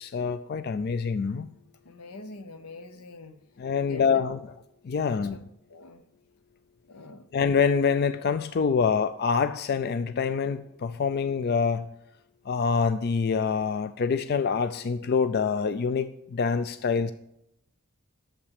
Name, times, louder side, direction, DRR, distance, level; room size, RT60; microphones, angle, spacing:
voice 1, 0.0-1.5 3.6-4.4 4.8-5.4 7.3-11.9 12.5-17.1, left 5 dB, 45° left, 0.3 m, -26 dB
voice 2, 1.8-3.4 3.8-4.0 4.9-5.4 5.7-6.0 6.9-7.3, left 3 dB, 85° left, 0.8 m, -44 dB
8.8 x 7.1 x 6.5 m
head